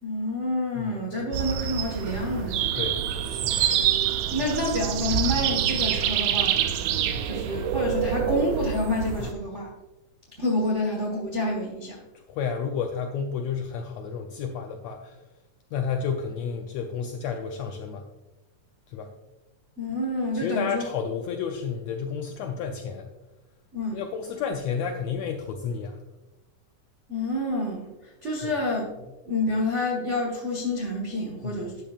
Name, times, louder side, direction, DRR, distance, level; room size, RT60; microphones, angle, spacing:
voice 1, 0.0-2.8 4.3-6.6 7.2-9.7 10.4-12.0 19.8-20.9 23.7-24.0 27.1-27.9 28.2-28.9 29.2-31.7, left 1 dB, 60° right, -2 dB, 0.7 m, -28 dB
sound 1, 1.3-9.3, right 9 dB, 85° right, 1.5 m, -26 dB
voice 2, 3.3-3.7 4.4-4.5 7.1-7.3 12.1-15.2 15.7-18.1 18.9-19.1 20.3-23.1 23.9-26.0 28.4-28.5 31.4-31.6, left 6 dB, 90° left, 4 dB, 1.5 m, -31 dB
12.5 x 8.8 x 2.4 m, 1.1 s
omnidirectional pair, 3.7 m